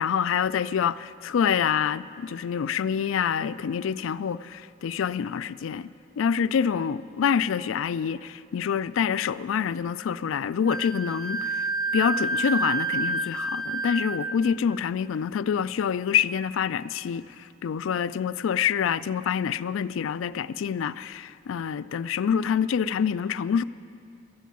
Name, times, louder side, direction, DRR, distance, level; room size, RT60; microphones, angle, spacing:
voice 1, 0.0-5.9 6.2-11.6 11.9-17.2 17.6-23.6, left 7 dB, 80° left, 0.3 m, -26 dB
Wind instrument woodwind instrument, 10.7-14.4, right 3 dB, 85° right, 0.9 m, -29 dB
13.0 x 8.4 x 9.2 m
head